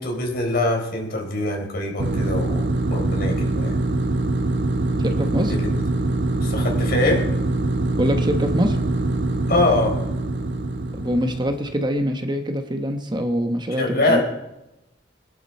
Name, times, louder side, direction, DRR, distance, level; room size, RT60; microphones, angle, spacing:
voice 1, 0.0-2.6 2.9-3.7 5.5-5.6 6.4-7.3 9.5-10.0 13.8-14.2, left 2 dB, 60° left, 1 dB, 4.1 m, -23 dB
sound 1, 2.0-11.8, right 2 dB, 90° right, 1.0 m, -23 dB
voice 2, 5.0-5.5 8.0-8.8 10.9-14.2, equal, 25° right, 6 dB, 1.2 m, -24 dB
22.5 x 11.5 x 4.4 m, 0.92 s
head